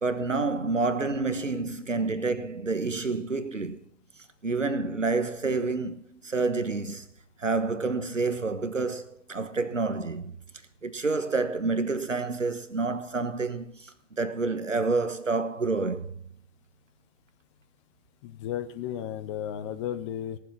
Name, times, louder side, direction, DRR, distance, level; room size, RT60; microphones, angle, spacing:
voice 1, 0.0-3.8 4.4-7.0 7.4-10.4 10.8-16.1, right 3 dB, 85° right, 1.3 m, -28 dB
voice 2, 18.2-20.4, left 10 dB, 25° left, 0.8 m, -34 dB
17.5 x 7.3 x 5.9 m
figure-of-eight pair, 120°, 36 cm